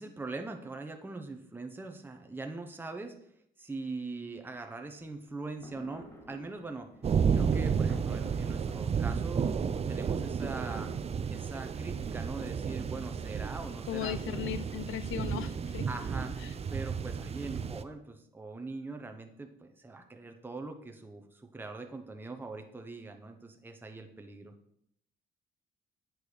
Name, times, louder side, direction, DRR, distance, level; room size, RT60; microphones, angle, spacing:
voice 1, 0.0-3.1 3.6-6.9 7.3-10.9 11.3-14.2 15.9-16.3 16.7-24.5, right 3 dB, 10° right, 5 dB, 0.8 m, -42 dB
sound 1, 5.0-11.0, equal, 15° left, 2.3 m, -54 dB
sound 2, 7.0-17.8, right 6 dB, 30° right, 0.4 m, -32 dB
voice 2, 13.9-15.9 16.4-16.5, left 11 dB, 85° left, 14 dB, 0.5 m, -37 dB
8.6 x 4.6 x 4.9 m, 0.72 s
cardioid pair, 90°, 20 cm